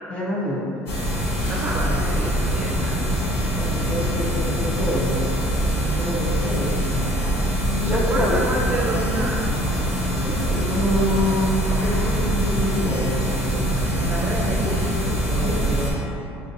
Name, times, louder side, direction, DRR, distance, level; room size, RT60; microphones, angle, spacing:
voice 1, 0.1-1.0 3.6-6.9 7.6-8.5 10.2-13.7 15.4-15.9, left 1 dB, 25° left, -4 dB, 0.8 m, -27 dB
sound 1, 0.9-15.9, equal, 70° left, 0.9 m, -23 dB
voice 2, 1.5-3.0 7.8-9.7 13.9-16.1, right 2 dB, 35° right, -2 dB, 0.6 m, -29 dB
5.3 x 2.6 x 2.6 m, 2.8 s
supercardioid pair, 105°, 5 cm